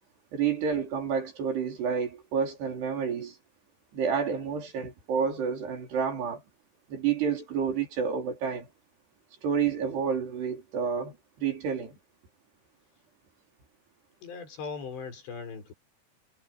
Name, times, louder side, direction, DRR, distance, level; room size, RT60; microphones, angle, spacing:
voice 1, 0.3-3.4 3.9-6.4 6.9-8.7 9.4-12.0, right 6 dB, 70° right, 6.5 m, -29 dB
voice 2, 14.2-15.7, left 5 dB, 80° left, 8.1 m, -39 dB
omnidirectional pair, 4.9 m